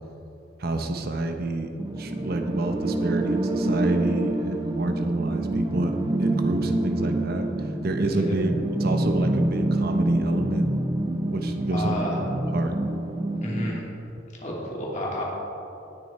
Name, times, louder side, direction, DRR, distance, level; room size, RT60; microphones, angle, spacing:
voice 1, 0.6-1.7 2.0-5.9 6.2-7.5 7.8-8.5 8.8-10.7 11.2-12.7, right 2 dB, 55° right, 5 dB, 0.9 m, -28 dB
sound 1, 1.8-13.8, right 1 dB, 25° right, 0.6 m, -27 dB
voice 2, 8.0-8.3 11.7-12.2 13.4-13.8 14.4-15.2, left 1 dB, 40° left, -4 dB, 2.7 m, -31 dB
18.0 x 6.5 x 4.4 m, 3.0 s
head